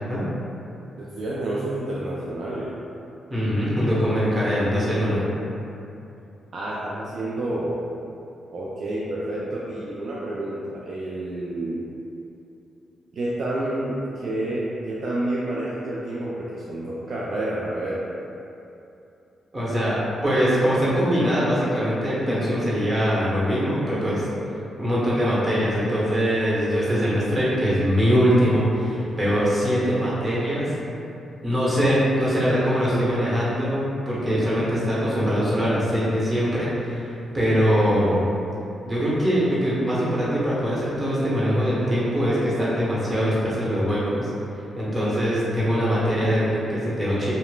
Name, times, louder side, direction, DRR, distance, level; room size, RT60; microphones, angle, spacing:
voice 1, 1.0-2.8 6.5-7.8 8.5-11.9 13.1-18.0, right 1 dB, 60° right, -7 dB, 0.3 m, -29 dB
voice 2, 3.3-5.3 19.5-24.2 24.8-30.7 31.4-38.2 38.8-44.3 44.7-47.3, equal, 30° right, -8 dB, 1.0 m, -22 dB
2.9 x 2.0 x 2.3 m, 2.7 s
supercardioid pair, 50°, 0 cm